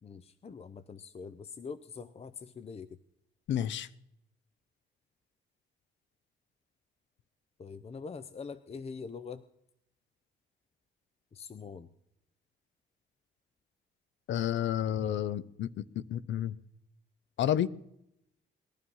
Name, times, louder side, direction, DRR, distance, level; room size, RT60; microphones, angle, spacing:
voice 1, 0.0-3.0 7.6-9.5 11.3-11.9, left 5 dB, 30° left, 0.6 m, -44 dB
voice 2, 3.5-3.9 14.3-15.7 16.1-16.5 17.4-17.7, left 10 dB, 70° left, 0.7 m, -30 dB
20.0 x 11.5 x 5.6 m
cardioid pair, 90°, 20 cm